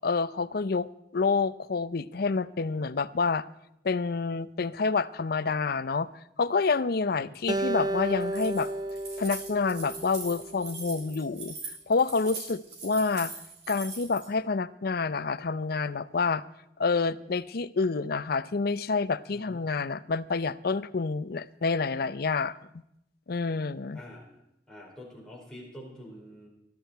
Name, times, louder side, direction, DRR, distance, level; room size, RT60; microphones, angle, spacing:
voice 1, 0.0-3.5 3.8-6.1 6.4-8.7 9.2-11.5 11.9-13.3 13.7-16.4 16.8-22.6 23.3-24.0, left 4 dB, 55° left, 16 dB, 0.5 m, -28 dB
voice 2, 7.0-7.3 19.3-19.6 23.9-24.3 24.7-26.5, equal, 5° left, -3 dB, 4.6 m, -46 dB
Acoustic guitar, 7.5-10.8, right 1 dB, 25° right, 0.6 m, -32 dB
Keys jangling, 8.2-14.3, right 4 dB, 70° right, 5.6 m, -41 dB
20.0 x 13.0 x 4.6 m, 0.82 s
head